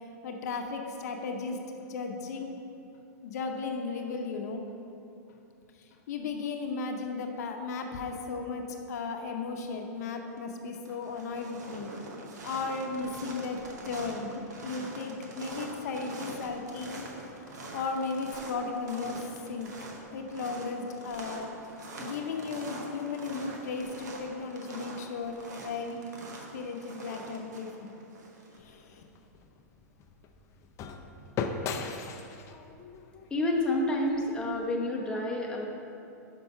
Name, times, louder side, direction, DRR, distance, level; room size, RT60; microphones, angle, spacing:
voice 1, 0.2-1.6 1.9-2.5 3.2-4.6 5.8-11.9 12.4-14.3 14.6-17.1 17.7-19.7 20.1-21.6 22.0-26.0 26.5-27.9 28.6-29.0, left 4 dB, 70° left, 3 dB, 0.7 m, -35 dB
sound 1, 10.0-10.4 10.7-28.6, right 2 dB, 80° right, 1.1 m, -44 dB
sound 2, 28.6-34.7, left 5 dB, 30° left, 0.5 m, -39 dB
voice 2, 33.3-35.7, left 1 dB, 10° left, -2 dB, 0.9 m, -29 dB
5.6 x 5.3 x 5.5 m, 2.7 s
hypercardioid pair, 125°, 9 cm